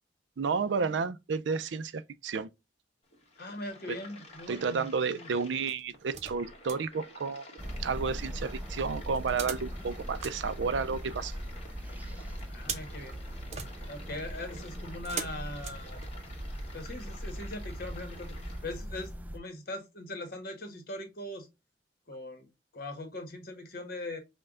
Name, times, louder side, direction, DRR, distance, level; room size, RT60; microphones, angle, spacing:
voice 1, 0.4-2.5 4.5-7.4 7.8-11.3, right 5 dB, 85° right, 0.5 m, -31 dB
sound 1, 3.0-18.6, left 2 dB, 35° left, 1.4 m, -52 dB
voice 2, 3.4-5.3 12.5-13.2 13.8-16.0 16.7-18.4 18.6-21.5 22.1-22.5 22.7-24.2, left 1 dB, 55° left, 1.2 m, -41 dB
sound 2, 4.3-4.8 5.7-6.9 9.1-11.3 12.4-16.5 17.0-17.1, right 6 dB, 40° right, 0.7 m, -43 dB
sound 3, 7.6-19.4, equal, 10° right, 0.4 m, -40 dB
5.5 x 2.2 x 3.6 m
head